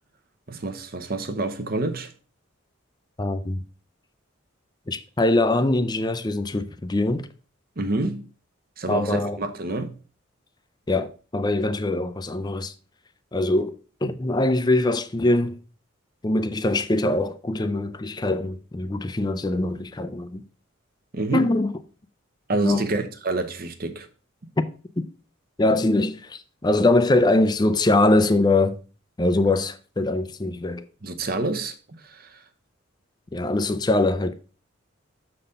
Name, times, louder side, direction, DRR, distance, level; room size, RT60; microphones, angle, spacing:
voice 1, 0.5-2.1 7.8-8.3 8.8-9.9 21.1-21.5 22.5-24.1 31.0-32.4, right 2 dB, 45° right, 0.8 m, -28 dB
voice 2, 3.2-3.6 4.9-7.3 8.9-9.4 10.9-12.7 13.3-15.6 16.2-20.4 21.3-21.7 22.5-22.8 25.0-25.1 25.6-28.8 29.2-30.8 33.3-34.3, left 2 dB, 20° left, 0.4 m, -23 dB
6.7 x 4.0 x 5.1 m
head